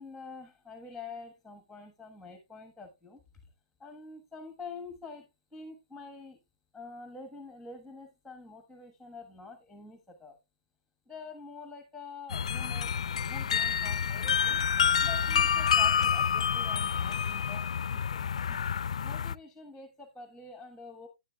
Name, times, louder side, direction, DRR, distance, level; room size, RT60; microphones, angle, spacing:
voice 1, 0.0-3.5 3.8-6.4 6.7-10.4 11.1-14.6 15.0-18.2 18.5-18.6 19.0-21.1, left 4 dB, ahead, 1.3 m, -47 dB
sound 1, 12.3-19.3, left 7 dB, 70° left, 0.4 m, -28 dB
10.5 x 9.8 x 2.3 m
hypercardioid pair, 160°, 4 cm